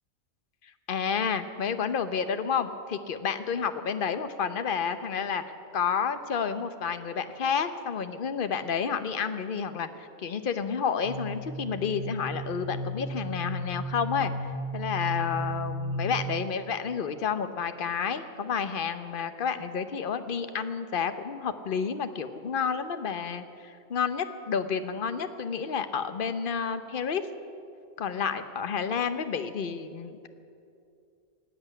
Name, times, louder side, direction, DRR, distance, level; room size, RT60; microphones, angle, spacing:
voice 1, 0.9-5.4 5.7-27.2 28.0-30.3, left 6 dB, 55° left, 10 dB, 1.0 m, -30 dB
sound 1, 11.0-16.1, equal, 30° right, 4.2 m, -34 dB
18.0 x 8.0 x 10.0 m, 2.5 s
omnidirectional pair, 1.1 m